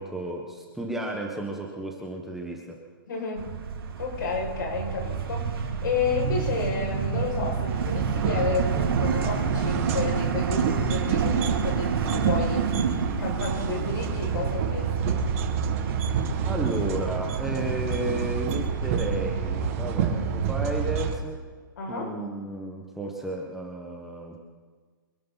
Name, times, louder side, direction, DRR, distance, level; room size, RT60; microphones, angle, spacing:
voice 1, 0.0-2.8 16.4-21.4 21.9-24.4, right 1 dB, 5° right, 0 dB, 1.5 m, -33 dB
voice 2, 3.1-3.5 4.0-12.7 13.2-15.2 21.8-22.1, left 4 dB, 60° left, 0 dB, 6.4 m, -31 dB
sound 1, 3.4-21.1, right 6 dB, 85° right, 3.1 m, -30 dB
sound 2, 7.7-21.1, right 6 dB, 40° right, 2.0 m, -28 dB
25.5 x 12.0 x 4.2 m, 1.5 s
hypercardioid pair, 160°, 12 cm